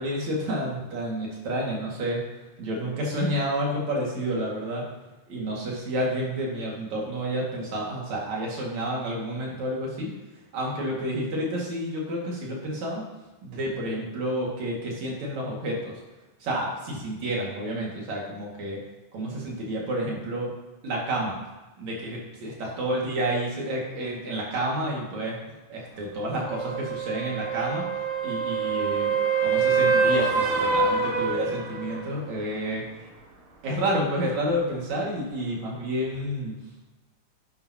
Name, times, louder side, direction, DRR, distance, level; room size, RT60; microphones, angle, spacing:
voice 1, 0.0-2.2 2.6-4.8 5.3-10.1 10.5-13.0 13.4-15.9 16.4-18.8 19.1-20.5 20.8-21.4 21.8-25.4 25.7-27.8 28.2-32.8 33.6-36.6, right 1 dB, 55° right, -3 dB, 3.3 m, -30 dB
sound 1, 26.4-32.1 36.2-36.3, right 5 dB, 90° right, 3.8 m, -25 dB
11.0 x 11.0 x 2.9 m, 1.1 s
omnidirectional pair, 4.1 m